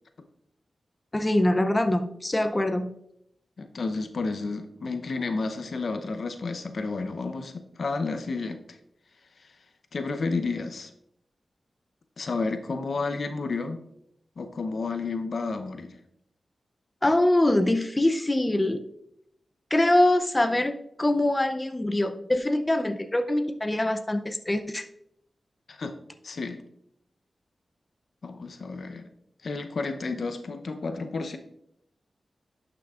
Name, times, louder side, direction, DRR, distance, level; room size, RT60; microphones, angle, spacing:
voice 1, 1.1-2.9 17.0-18.8 19.7-24.8, left 1 dB, 20° left, 8 dB, 0.5 m, -24 dB
voice 2, 3.6-8.8 9.9-10.9 12.2-13.8 14.4-16.0 25.7-25.9 26.2-26.6 28.2-29.1 29.4-31.4, left 3 dB, 70° left, 7 dB, 0.7 m, -31 dB
11.5 x 6.0 x 2.4 m, 0.76 s
wide cardioid pair, 80°, 0 cm